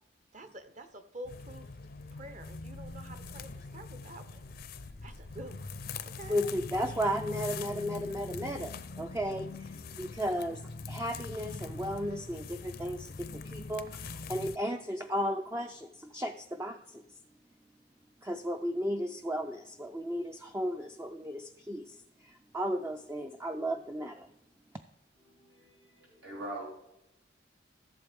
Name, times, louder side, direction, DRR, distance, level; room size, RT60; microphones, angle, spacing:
voice 1, 0.3-1.7 2.1-4.5 5.0-5.7 6.1-6.4, right 1 dB, 40° right, 9 dB, 0.9 m, -48 dB
sound 1, 1.2-14.6, left 3 dB, 55° left, 0.5 m, -43 dB
voice 2, 6.3-10.6 10.9-17.0 18.2-24.3, equal, 15° right, 5 dB, 0.4 m, -35 dB
voice 3, 25.1-26.7, right 1 dB, 90° right, -3 dB, 3.9 m, -43 dB
14.5 x 7.3 x 3.5 m, 0.87 s
head